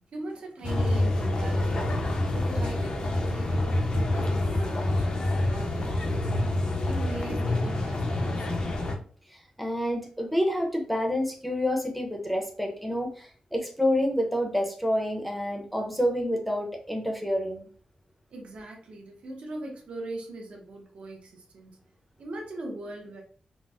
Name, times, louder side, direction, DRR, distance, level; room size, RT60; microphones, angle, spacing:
voice 1, 0.1-2.1 2.3-6.2 6.8-8.8 18.3-21.8 22.2-23.2, right 2 dB, 65° right, 0 dB, 0.7 m, -40 dB
sound 1, 0.6-9.0, left 1 dB, 45° left, 0.5 m, -27 dB
voice 2, 9.3-17.7, equal, ahead, 1 dB, 0.6 m, -28 dB
4.0 x 2.0 x 2.3 m, 0.44 s
wide cardioid pair, 145°, 2 cm